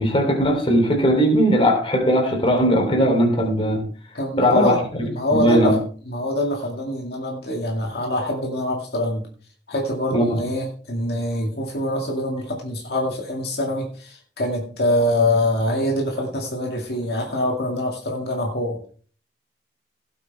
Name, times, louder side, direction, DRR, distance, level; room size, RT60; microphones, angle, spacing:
voice 1, 0.0-3.8 4.4-5.8 10.1-10.4, equal, 30° left, 3 dB, 3.1 m, -19 dB
voice 2, 4.1-4.8 5.1-5.8 6.1-9.3 9.7-18.8, left 1 dB, 60° left, 0 dB, 2.2 m, -24 dB
16.5 x 8.4 x 3.5 m, 0.44 s
head